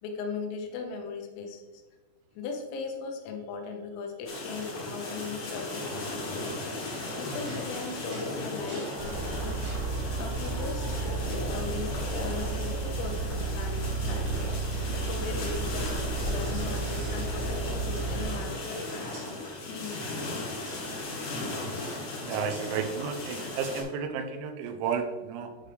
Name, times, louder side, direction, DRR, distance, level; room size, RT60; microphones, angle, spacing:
voice 1, 0.0-1.8 2.4-6.5 7.2-14.3 14.9-20.4, left 4 dB, 85° left, 2 dB, 3.7 m, -38 dB
sound 1, 4.2-23.8, left 2 dB, 65° left, 1.7 m, -36 dB
sound 2, 6.5-10.0 10.6-11.2 11.6-11.7 12.1-13.1 13.9-14.8 15.1-16.7 16.9-17.1 17.5-18.7 19.1-19.3 20.6-20.8 22.5-22.8, right 1 dB, 55° right, 1.7 m, -49 dB
sound 3, 9.0-18.2, right 3 dB, 70° right, 3.4 m, -32 dB
voice 2, 21.7-25.6, right 6 dB, 85° right, 8 dB, 3.4 m, -33 dB
10.0 x 5.0 x 3.3 m, 1.3 s
omnidirectional pair, 5.9 m